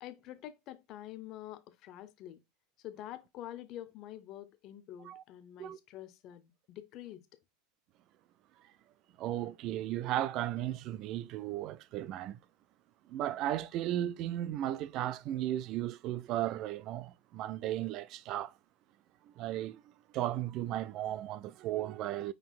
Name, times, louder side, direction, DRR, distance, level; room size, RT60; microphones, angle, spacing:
voice 1, 0.0-2.4 2.8-7.2, left 12 dB, 45° left, 0.6 m, -47 dB
voice 2, 9.2-12.4 13.1-18.5 19.4-19.8 20.1-22.3, right 13 dB, 45° right, 0.3 m, -35 dB
5.6 x 4.0 x 2.4 m
supercardioid pair, 140°, 0 cm